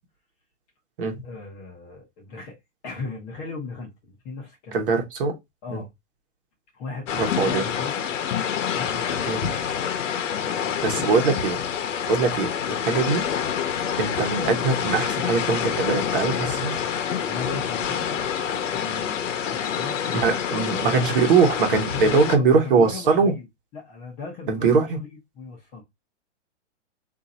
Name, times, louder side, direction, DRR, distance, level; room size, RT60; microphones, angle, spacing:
voice 1, 1.2-2.6 2.8-4.8 5.6-5.9 6.7-8.0 8.7-9.6 10.3-11.4 15.9-18.2 18.7-20.7 21.9-23.5 23.7-25.8, left 4 dB, 15° left, 0.7 m, -37 dB
voice 2, 4.7-5.3 5.7-5.8 7.2-7.7 9.3-9.4 10.8-11.6 12.1-13.3 14.0-16.7 20.1-23.3 24.5-25.0, right 4 dB, 45° right, 1.1 m, -22 dB
sound 1, 7.1-22.4, left 8 dB, 80° left, 0.9 m, -27 dB
3.8 x 2.7 x 4.1 m
hypercardioid pair, 165°, 37 cm